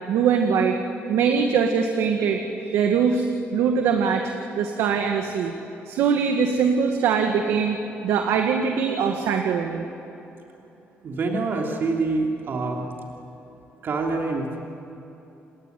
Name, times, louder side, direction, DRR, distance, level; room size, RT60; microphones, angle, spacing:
voice 1, 0.1-0.8 1.1-2.4 2.7-3.3 3.5-5.5 5.9-7.8 8.0-9.8, right 6 dB, 85° right, 4 dB, 1.9 m, -22 dB
voice 2, 11.0-12.8 13.8-14.6, right 3 dB, 55° right, 0 dB, 3.2 m, -26 dB
29.5 x 19.0 x 9.5 m, 3.0 s
cardioid pair, 100°, 4 cm